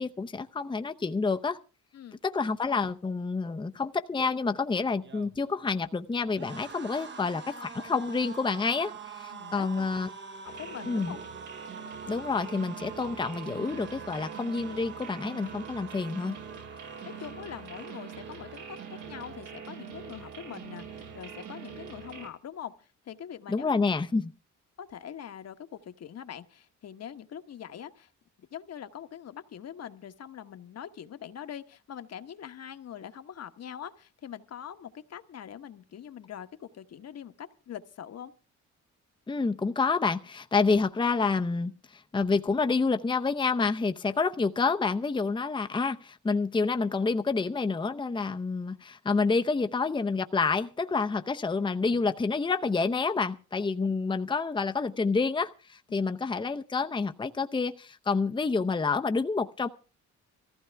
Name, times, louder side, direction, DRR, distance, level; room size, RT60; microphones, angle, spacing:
voice 1, 0.0-1.6 2.2-10.1 10.9-11.1 12.1-16.4 23.5-24.3 39.3-59.7, left 4 dB, 15° left, 8 dB, 0.7 m, -28 dB
sound 1, 4.9-20.1 20.4-20.7 20.9-21.7, right 5 dB, 40° right, 1.0 m, -46 dB
voice 2, 9.3-9.9 10.4-11.2 16.8-23.8 24.8-28.1 28.4-38.3 53.8-53.9, left 9 dB, 55° left, 9 dB, 1.2 m, -43 dB
sound 2, 10.4-22.3, right 7 dB, 80° right, 3.5 m, -44 dB
19.5 x 15.0 x 3.5 m, 0.35 s
cardioid pair, 90°, 30 cm